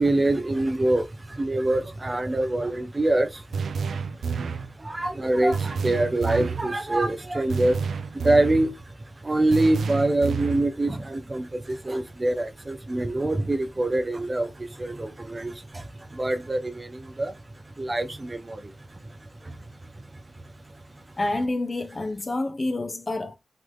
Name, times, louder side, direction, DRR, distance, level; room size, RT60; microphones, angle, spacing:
voice 1, 0.0-3.5 3.9-8.9 9.2-17.4 17.8-19.2 19.4-19.5, right 2 dB, 20° right, 1.0 m, -25 dB
sound 1, 3.5-4.7 5.5-6.7 7.5-8.7 9.5-10.7, right 5 dB, 85° right, 0.8 m, -29 dB
voice 2, 21.2-23.4, left 2 dB, 25° left, 1.0 m, -28 dB
8.0 x 4.1 x 3.8 m
wide cardioid pair, 170°, 0 cm